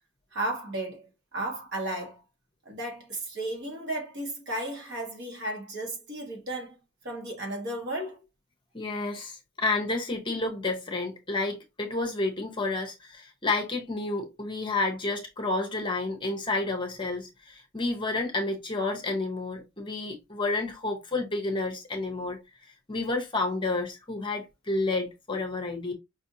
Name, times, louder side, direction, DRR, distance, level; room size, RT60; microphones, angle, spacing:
voice 1, 0.3-2.2 2.6-6.8 7.0-8.2, right 1 dB, 50° right, 1.3 m, -34 dB
voice 2, 8.7-25.9, left 2 dB, 20° left, 0.8 m, -30 dB
5.3 x 2.6 x 2.7 m
head